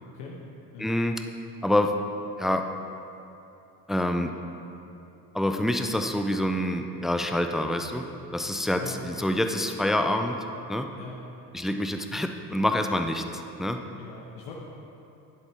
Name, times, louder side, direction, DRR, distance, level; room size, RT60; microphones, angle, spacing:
voice 1, 0.8-1.2 1.6-1.9 2.4-2.6 3.9-4.3 5.3-8.0 8.3-10.4 10.7-10.9 11.5-13.8, left 1 dB, ahead, 5 dB, 0.5 m, -26 dB
voice 2, 14.0-14.5, left 5 dB, 60° left, -3 dB, 1.3 m, -41 dB
12.0 x 11.0 x 3.5 m, 2.8 s
figure-of-eight pair, 55°, 49 cm